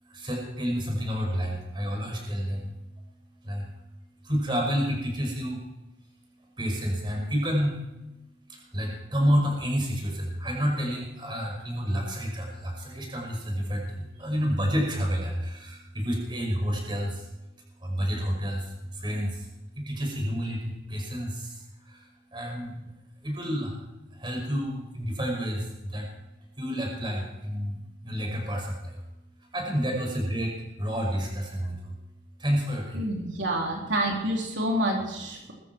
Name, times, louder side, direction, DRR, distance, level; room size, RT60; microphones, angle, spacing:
voice 1, 0.1-2.7 3.5-3.6 4.3-5.6 6.6-7.7 8.7-13.8 14.2-17.1 17.8-18.6 19.0-19.3 19.9-21.3 22.3-22.7 23.2-23.7 24.2-25.6 25.9-26.0 26.6-27.8 28.0-28.9 29.5-30.5 30.8-31.7 32.4-33.0, equal, 25° right, 0 dB, 5.5 m, -29 dB
voice 2, 32.9-35.5, right 1 dB, 80° right, -1 dB, 3.5 m, -28 dB
21.5 x 14.5 x 4.6 m, 0.98 s
head